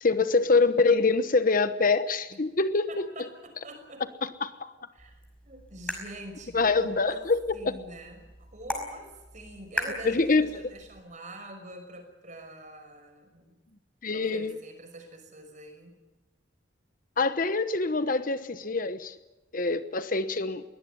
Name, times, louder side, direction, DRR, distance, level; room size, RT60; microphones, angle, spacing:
voice 1, 0.0-3.1 4.2-4.7 6.5-7.6 10.0-10.6 14.0-14.6 17.2-19.1 19.5-20.6, left 3 dB, 45° left, 12 dB, 1.1 m, -25 dB
voice 2, 2.9-4.0 4.9-7.2 7.5-13.6 14.1-16.0, right 1 dB, 40° right, 6 dB, 5.9 m, -45 dB
sound 1, 5.0-11.0, left 1 dB, 5° left, 5.5 m, -40 dB
22.5 x 18.5 x 9.6 m, 1.1 s
head